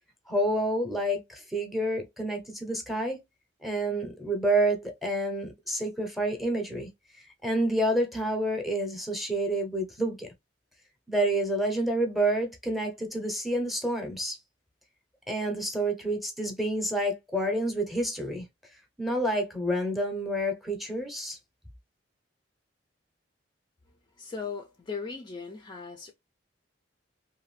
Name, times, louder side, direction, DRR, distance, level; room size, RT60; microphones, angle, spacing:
voice 1, 0.3-3.2 3.6-6.9 7.4-10.3 11.1-14.4 15.3-18.5 19.0-21.4, right 1 dB, ahead, 0.7 m, -28 dB
voice 2, 24.2-26.1, left 5 dB, 25° left, 0.4 m, -38 dB
2.6 x 2.5 x 3.0 m
head